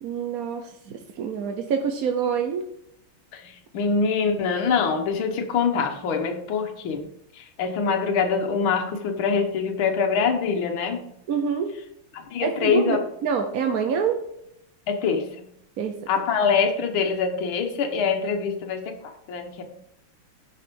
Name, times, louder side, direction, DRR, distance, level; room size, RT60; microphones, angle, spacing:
voice 1, 0.0-2.6 11.3-11.7 12.4-14.2 15.8-16.0, right 6 dB, 60° right, 5 dB, 0.9 m, -26 dB
voice 2, 3.3-7.1 7.3-11.1 12.1-13.0 14.9-15.5 16.1-19.6, left 5 dB, 70° left, 3 dB, 1.9 m, -24 dB
10.0 x 5.5 x 5.3 m, 0.77 s
omnidirectional pair, 2.4 m